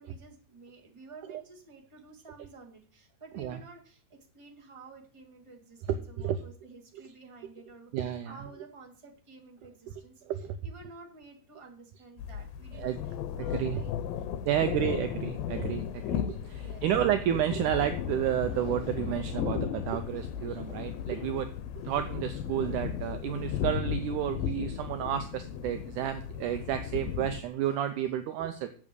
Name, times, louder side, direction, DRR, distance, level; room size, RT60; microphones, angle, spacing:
voice 1, 0.0-13.9 14.4-15.1 16.5-16.8, right 3 dB, 30° right, 0 dB, 0.5 m, -52 dB
voice 2, 5.9-6.4 7.9-8.3 10.2-10.6 12.7-13.0 13.4-13.8 14.4-21.5 21.8-28.7, right 11 dB, 75° right, 8 dB, 1.9 m, -31 dB
sound 1, 12.2-27.4, left 9 dB, 80° left, 2.5 m, -35 dB
8.6 x 7.6 x 6.7 m, 0.44 s
omnidirectional pair, 4.2 m